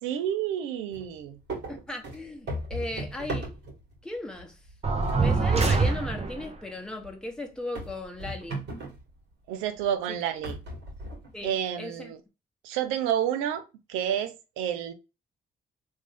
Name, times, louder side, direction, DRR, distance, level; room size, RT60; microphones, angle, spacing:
voice 1, 0.0-1.4 9.5-10.6 11.4-12.2 12.6-13.6 13.9-14.9, right 10 dB, 85° right, 0.6 m, -29 dB
sound 1, 0.9-1.1 1.5-4.0 4.4-4.7 5.0-6.1 6.4-6.5 7.0-7.1 7.8-9.1 9.8-9.9 10.4-11.5, right 1 dB, 60° right, 1.9 m, -37 dB
voice 2, 1.7-3.5 4.0-4.6 5.1-8.6 11.3-12.1, left 1 dB, 5° left, 0.9 m, -36 dB
sound 2, 4.8-6.5, right 4 dB, 30° right, 0.9 m, -24 dB
3.2 x 2.7 x 3.4 m
supercardioid pair, 50°, 20 cm